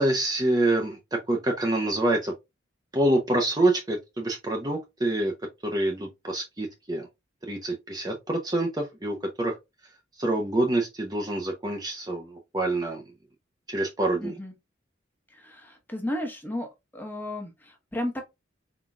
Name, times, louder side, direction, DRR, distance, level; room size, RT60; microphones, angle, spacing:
voice 1, 0.0-2.3 2.9-5.3 5.6-7.1 7.4-9.6 10.2-12.3 12.5-13.0 13.7-14.3, right 1 dB, 20° right, 0.7 m, -26 dB
voice 2, 14.2-14.5 15.3-16.7 16.9-18.2, left 1 dB, 10° left, 1.0 m, -33 dB
4.4 x 4.0 x 2.3 m
head